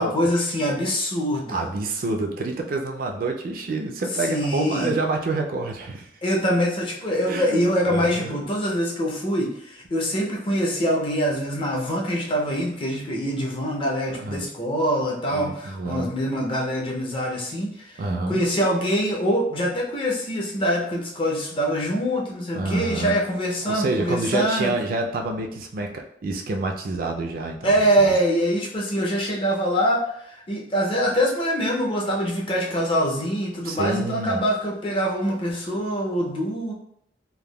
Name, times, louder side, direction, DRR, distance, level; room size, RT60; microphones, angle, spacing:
voice 1, 0.0-1.7 4.2-5.0 6.2-24.7 27.6-36.7, equal, 30° left, -2 dB, 0.5 m, -24 dB
voice 2, 1.5-6.2 7.3-8.4 14.1-14.5 15.3-16.1 18.0-18.4 22.5-23.2 23.6-28.1 33.6-34.4, right 2 dB, 50° right, 2 dB, 0.3 m, -28 dB
3.4 x 2.1 x 2.2 m, 0.71 s
head